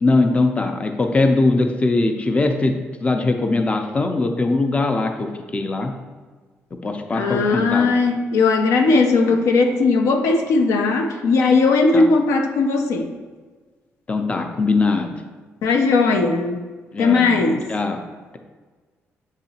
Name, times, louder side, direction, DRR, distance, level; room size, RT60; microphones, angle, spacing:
voice 1, 0.0-2.7 3.0-5.9 6.8-7.9 11.9-12.1 14.1-15.1 16.9-17.3 17.7-18.0, left 3 dB, 25° left, 5 dB, 0.5 m, -20 dB
voice 2, 7.1-13.1 15.6-16.6 17.0-17.6, left 3 dB, 80° left, 4 dB, 0.5 m, -18 dB
6.9 x 2.8 x 2.8 m, 1.4 s
cardioid pair, 80°, 5 cm